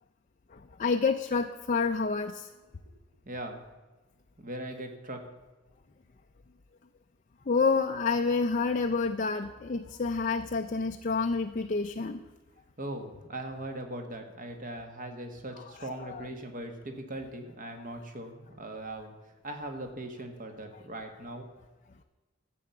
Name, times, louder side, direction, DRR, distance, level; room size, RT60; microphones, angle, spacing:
voice 1, 0.5-2.5 7.5-12.2 15.8-16.2, left 4 dB, 35° left, 5 dB, 0.5 m, -28 dB
voice 2, 3.2-3.6 4.4-5.2 12.8-21.5, right 1 dB, 40° right, 5 dB, 1.5 m, -40 dB
12.0 x 7.7 x 7.0 m, 1.2 s
head